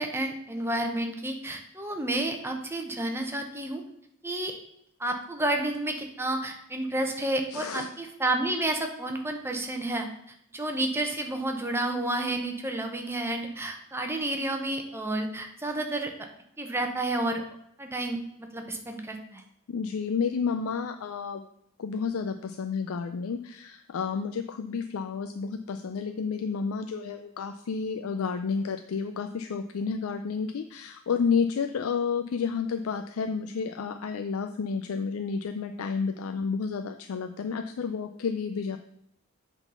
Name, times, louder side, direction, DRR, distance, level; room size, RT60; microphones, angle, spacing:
voice 1, 0.0-3.8 4.2-4.5 5.0-10.1 10.5-16.1 16.6-17.4 17.8-18.2 18.5-19.4, right 1 dB, 10° right, 4 dB, 0.9 m, -30 dB
voice 2, 7.5-7.9 19.7-21.4 21.8-38.8, left 5 dB, 85° left, 8 dB, 0.4 m, -31 dB
8.1 x 3.9 x 5.6 m, 0.75 s
head